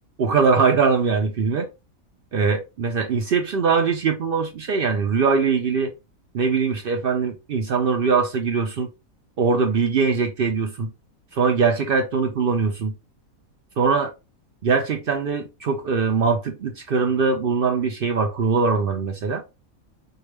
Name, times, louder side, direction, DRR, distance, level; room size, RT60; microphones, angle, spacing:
voice 1, 0.2-1.7 2.3-5.9 6.3-8.9 9.4-10.9 11.3-12.9 13.8-14.1 14.6-19.4, right 5 dB, 60° right, 0.6 m, -21 dB
4.6 x 2.3 x 3.2 m
omnidirectional pair, 1.5 m